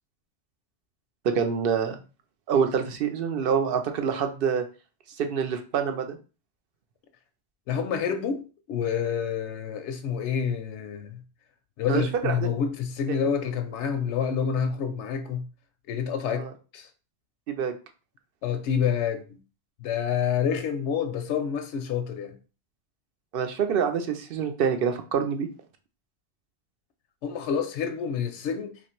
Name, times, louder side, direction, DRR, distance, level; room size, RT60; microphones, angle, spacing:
voice 1, 1.2-2.0 2.5-4.6 5.2-6.2 11.9-12.5 16.3-16.5 17.5-17.7 23.3-25.5, right 7 dB, 60° right, 0.7 m, -26 dB
voice 2, 7.7-11.2 11.8-15.5 15.9-16.5 16.7-16.9 18.4-19.4 19.8-22.4 27.2-28.8, left 7 dB, 85° left, 0.9 m, -28 dB
3.0 x 2.5 x 4.3 m
omnidirectional pair, 1.1 m